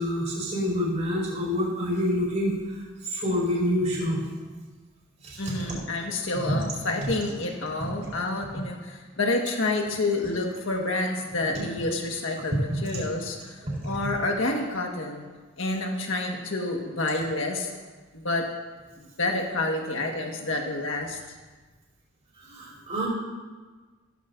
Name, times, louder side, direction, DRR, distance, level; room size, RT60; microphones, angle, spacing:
voice 1, 0.0-2.5 3.1-4.2 5.2-5.5 13.6-13.8 22.4-23.1, equal, 35° right, -6 dB, 4.1 m, -27 dB
voice 2, 5.4-15.2 15.6-17.7 18.1-18.5 19.0-21.2, left 2 dB, 65° left, 1 dB, 1.6 m, -29 dB
15.5 x 13.5 x 2.7 m, 1.3 s
head